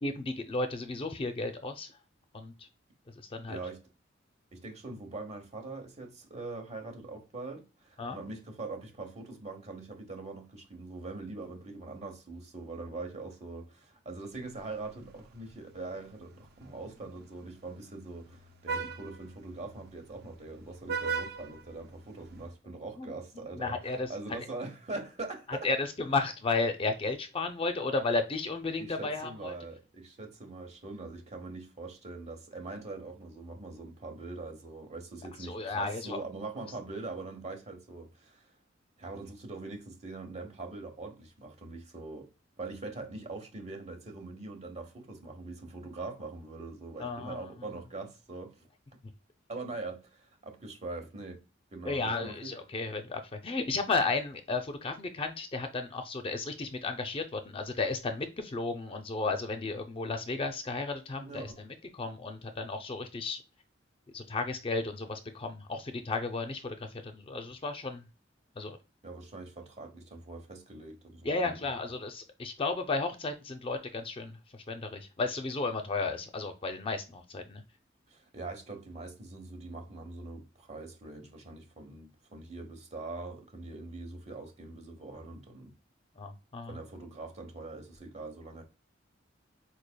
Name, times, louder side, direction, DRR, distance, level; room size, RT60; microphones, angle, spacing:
voice 1, 0.0-1.9 2.3-2.7 3.2-3.6 8.0-8.2 23.0-24.1 25.5-29.5 35.4-36.2 47.0-47.5 51.8-63.4 64.1-68.1 68.6-68.8 71.2-74.4 74.7-77.6 86.2-86.8, left 3 dB, 30° left, 0.4 m, -33 dB
voice 2, 3.5-3.8 4.5-25.7 28.8-38.5 39.0-42.3 42.6-48.7 49.5-51.4 51.7-52.5 61.2-61.6 69.0-71.5 78.1-85.7 86.7-88.6, right 3 dB, 35° right, 0.9 m, -42 dB
Vehicle horn car horn honking, 14.4-22.5, right 5 dB, 55° right, 0.5 m, -41 dB
4.3 x 3.2 x 2.2 m
head